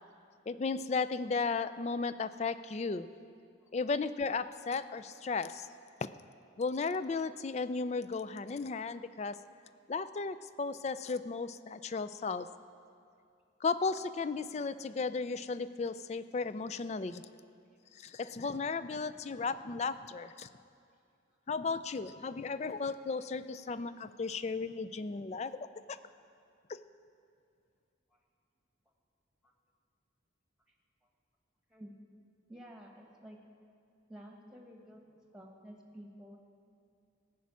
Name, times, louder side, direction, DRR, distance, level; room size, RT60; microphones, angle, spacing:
voice 1, 0.5-3.1 3.7-5.7 6.6-9.4 9.9-12.5 13.6-17.2 18.0-20.5 21.5-26.0, left 4 dB, 35° left, 14 dB, 0.3 m, -35 dB
voice 2, 32.5-33.4 34.1-36.4, equal, 5° right, 1 dB, 1.3 m, -51 dB
15.5 x 6.1 x 8.4 m, 2.4 s
head